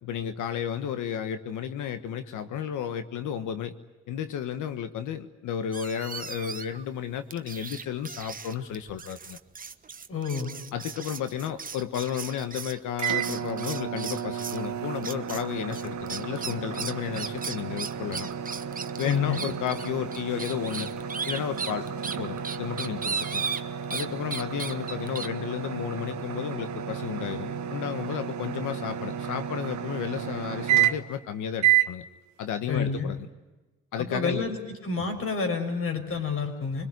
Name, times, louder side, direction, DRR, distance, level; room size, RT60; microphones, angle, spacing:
voice 1, 0.0-3.7 4.1-9.4 10.7-18.3 19.0-20.9 21.3-21.9 22.2-23.4 23.9-32.0 32.4-33.3 33.9-34.5, left 9 dB, 80° left, 9 dB, 1.4 m, -33 dB
sound 1, 5.7-6.8 7.3-14.7 15.0-15.4 15.7-24.1 24.3-25.3, right 5 dB, 30° right, 1.2 m, -36 dB
voice 2, 10.1-10.6 19.0-19.4 32.7-33.1 34.0-34.6 34.8-36.9, left 5 dB, 45° left, 6 dB, 5.8 m, -29 dB
sound 2, 13.0-31.2 31.6-31.9, right 10 dB, 65° right, 1.5 m, -31 dB
24.5 x 21.0 x 9.5 m, 1.2 s
cardioid pair, 90°, 30 cm